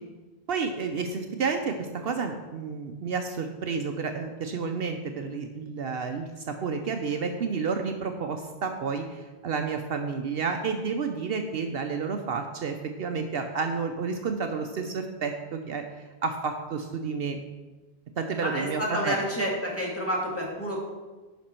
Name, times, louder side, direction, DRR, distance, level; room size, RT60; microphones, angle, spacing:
voice 1, 0.5-15.8 16.2-17.4 18.2-19.2, right 5 dB, 65° right, 5 dB, 0.8 m, -30 dB
voice 2, 18.4-20.8, equal, 10° left, -4 dB, 1.9 m, -29 dB
11.5 x 5.2 x 4.4 m, 1.2 s
omnidirectional pair, 1.1 m